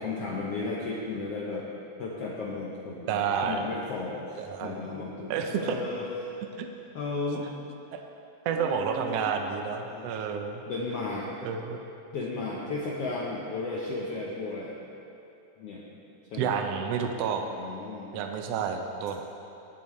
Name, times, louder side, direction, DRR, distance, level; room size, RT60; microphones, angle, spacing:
voice 1, 0.0-1.7 2.0-6.3 6.9-7.5 8.5-9.3 9.8-10.1 10.7-11.3 12.1-14.7 15.6-15.9 16.3-16.5 17.4-18.1, left 3 dB, 65° left, -4 dB, 1.6 m, -34 dB
voice 2, 3.1-3.6 4.4-4.7 5.3-5.8 6.6-6.7 7.9-8.0 8.4-10.6 11.4-11.9 16.4-17.5 18.1-19.2, right 6 dB, 75° right, 4 dB, 1.4 m, -30 dB
18.5 x 8.7 x 3.2 m, 2.7 s
omnidirectional pair, 3.7 m